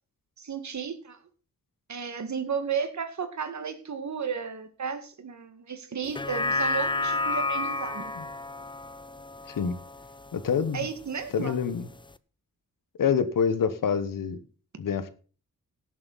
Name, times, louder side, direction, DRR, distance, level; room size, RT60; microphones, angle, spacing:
voice 1, 0.4-1.2 1.9-8.1 10.7-11.5, right 6 dB, 60° right, 2.0 m, -33 dB
sound 1, 6.0-10.6 11.0-11.1, left 2 dB, 15° left, 0.5 m, -30 dB
voice 2, 10.3-10.9 11.3-11.9 13.0-14.4 14.8-15.1, left 6 dB, 90° left, 1.3 m, -26 dB
17.0 x 7.4 x 4.1 m
wide cardioid pair, 95°, 32 cm